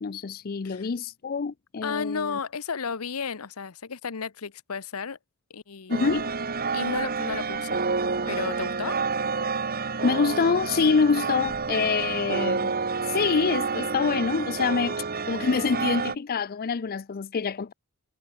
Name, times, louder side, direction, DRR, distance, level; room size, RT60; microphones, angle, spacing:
voice 1, 0.0-2.3 5.9-6.3 10.0-12.7 13.1-17.7, left 5 dB, 45° left, 0.5 m, -26 dB
voice 2, 1.8-5.2 5.5-6.1 6.7-7.8 8.3-9.0, left 5 dB, 90° left, 0.9 m, -33 dB
sound 1, 5.9-16.1, right 4 dB, 45° right, 1.7 m, -29 dB
head